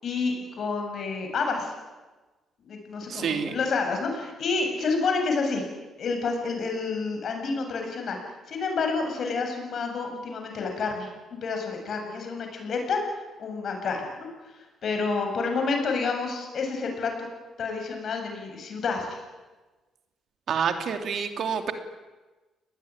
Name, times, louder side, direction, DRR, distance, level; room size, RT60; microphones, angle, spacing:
voice 1, 0.0-1.7 2.6-5.6 6.0-8.2 8.5-11.1 11.4-13.0 13.4-14.3 14.8-17.3 17.6-19.2, left 4 dB, 55° left, 4 dB, 7.8 m, -29 dB
voice 2, 3.1-3.5 20.5-21.7, right 7 dB, 65° right, 7 dB, 2.9 m, -28 dB
29.0 x 20.0 x 9.9 m, 1.2 s
cardioid pair, 90°, 0 cm